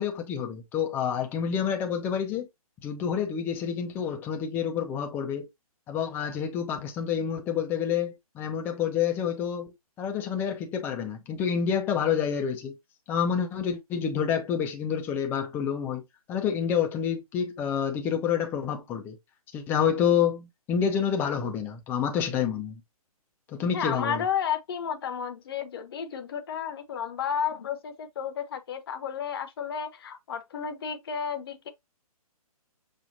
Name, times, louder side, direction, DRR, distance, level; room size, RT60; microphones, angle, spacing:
voice 1, 0.0-2.5 2.8-5.5 5.9-12.8 13.1-16.0 16.3-19.2 19.5-22.8 23.5-24.3, left 8 dB, 10° left, 0.5 m, -28 dB
voice 2, 23.7-31.7, left 7 dB, 40° left, 0.9 m, -32 dB
6.9 x 2.4 x 2.6 m
figure-of-eight pair, 135°, 19 cm